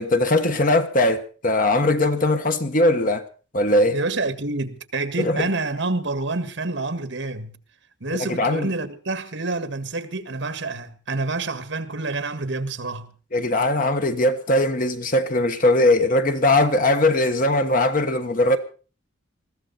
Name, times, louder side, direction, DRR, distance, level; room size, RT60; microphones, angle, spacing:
voice 1, 0.0-3.2 3.5-4.0 5.2-5.5 8.3-8.7 13.3-18.6, left 1 dB, 45° left, 1.3 m, -20 dB
voice 2, 3.9-7.6 8.0-13.1, right 3 dB, 65° right, 1.8 m, -28 dB
21.0 x 15.0 x 4.2 m
head